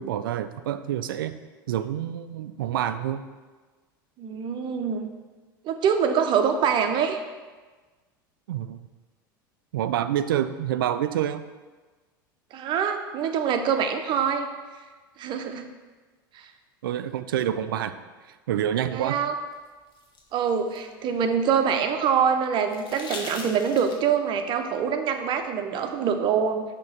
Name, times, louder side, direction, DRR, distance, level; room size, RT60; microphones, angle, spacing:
voice 1, 0.0-1.3 1.7-3.2 8.5-8.8 9.7-11.4 16.8-18.0 18.5-19.2, right 10 dB, 75° right, 11 dB, 0.4 m, -27 dB
voice 2, 4.2-5.1 5.6-7.2 12.5-14.5 15.2-15.7 16.3-16.5 18.9-19.3 20.3-26.6, right 7 dB, 45° right, 6 dB, 0.7 m, -25 dB
sound 1, 19.5-21.8 22.7-24.2 25.9-26.0, left 3 dB, 40° left, 1.1 m, -41 dB
6.3 x 2.9 x 5.6 m, 1.3 s
hypercardioid pair, 85°, 12 cm